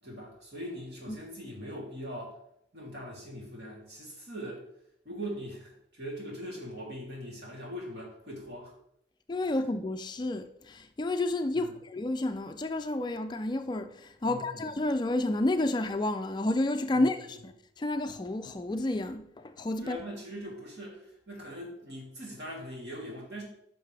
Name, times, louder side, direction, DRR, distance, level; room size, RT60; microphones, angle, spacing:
voice 1, 0.0-2.4 2.7-4.6 5.0-8.7 11.5-11.7 14.2-14.7 16.9-17.4 19.8-23.4, equal, 65° right, 3.0 m, -41 dB
voice 2, 9.3-20.0, left 2 dB, 25° left, 0.4 m, -30 dB
10.0 x 5.8 x 3.4 m
head